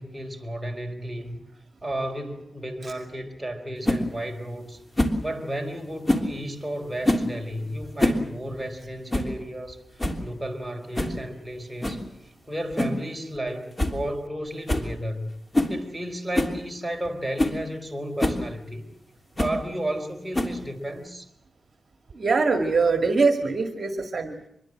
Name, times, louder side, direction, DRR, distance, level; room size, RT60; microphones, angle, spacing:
voice 1, 0.0-1.4 1.8-4.8 5.2-15.3 15.7-18.9 19.4-21.3, right 1 dB, 5° right, 4.2 m, -33 dB
sound 1, 3.8-4.0 5.0-5.2 6.1-6.3 7.0-7.3 7.8-8.3 8.5-8.6 9.1-9.3 9.7-9.8 10.0-10.3 11.0-11.2 11.8-12.0 12.8-13.0 13.4-13.5 13.8-14.0 14.3-14.4 14.7-14.9 15.5-15.8 16.3-16.6 17.1-17.2 17.4-17.6 18.2-18.4 19.4-19.6 20.3-20.7, left 1 dB, 25° left, 3.2 m, -24 dB
voice 2, 22.1-24.5, right 4 dB, 50° right, 2.2 m, -23 dB
25.0 x 22.0 x 7.6 m
wide cardioid pair, 85°, 0 cm